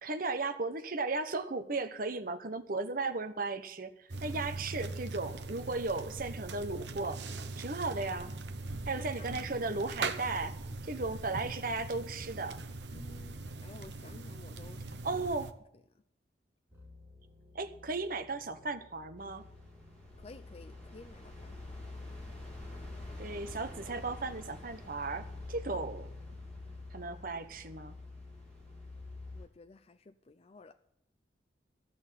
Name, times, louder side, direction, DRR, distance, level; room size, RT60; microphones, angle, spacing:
voice 1, 0.0-7.2 7.6-8.3 8.9-10.6 10.8-12.6 15.0-15.5 17.5-19.4 23.2-26.1 26.9-28.0, right 3 dB, 55° right, 1.1 m, -36 dB
sound 1, 4.1-15.5, right 3 dB, 85° right, 1.0 m, -41 dB
voice 2, 8.9-9.5 11.0-11.4 12.9-14.8 15.1-15.2 20.2-21.7 26.6-26.7 29.3-30.7, left 3 dB, 35° left, 0.5 m, -53 dB
sound 2, 16.7-29.4, left 3 dB, 15° right, 4.0 m, -48 dB
sound 3, 19.2-29.4, equal, 5° left, 3.3 m, -53 dB
14.5 x 6.3 x 8.9 m
head